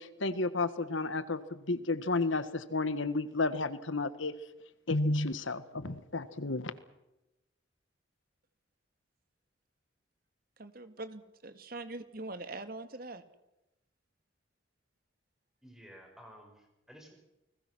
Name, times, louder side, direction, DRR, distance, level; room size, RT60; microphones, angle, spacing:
voice 1, 0.0-4.3 4.9-6.7, left 3 dB, 85° left, 13 dB, 1.5 m, -32 dB
voice 2, 10.6-13.2, right 2 dB, 50° right, 10 dB, 1.9 m, -43 dB
voice 3, 15.6-17.2, equal, ahead, 2 dB, 5.5 m, -54 dB
29.5 x 20.5 x 6.2 m, 0.94 s
head